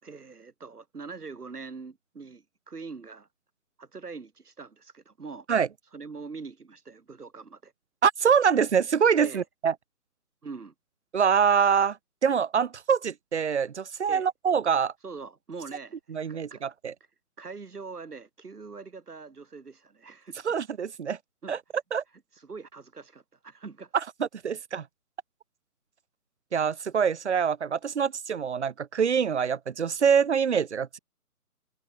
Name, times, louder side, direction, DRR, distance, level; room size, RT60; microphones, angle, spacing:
voice 1, 0.0-3.3 3.8-5.5 5.9-7.7 9.2-9.4 10.4-10.7 14.1-14.3 15.0-16.0 16.3-16.6 17.4-20.5 21.4-21.6 22.3-23.9, right 4 dB, 75° right, 6.2 m, -43 dB
voice 2, 8.0-9.7 11.1-12.0 12.2-14.9 16.1-16.9 20.4-21.2 21.5-21.6 21.9-22.0 24.2-24.8 26.5-31.0, right 7 dB, 45° right, 1.1 m, -25 dB
figure-of-eight pair, 160°, 47 cm